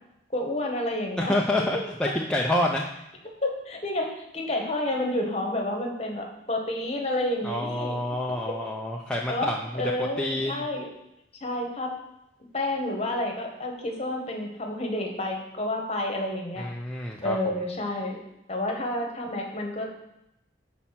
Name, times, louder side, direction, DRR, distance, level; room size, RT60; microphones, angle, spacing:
voice 1, 0.3-1.3 3.2-8.0 9.3-10.9 11.4-11.9 12.5-16.7 17.2-18.2 18.5-19.9, left 1 dB, 30° left, 1 dB, 1.0 m, -30 dB
voice 2, 1.2-2.9 7.4-9.5 10.0-10.6 16.6-17.6, left 1 dB, 5° left, -2 dB, 0.3 m, -28 dB
6.0 x 4.2 x 5.7 m, 0.85 s
head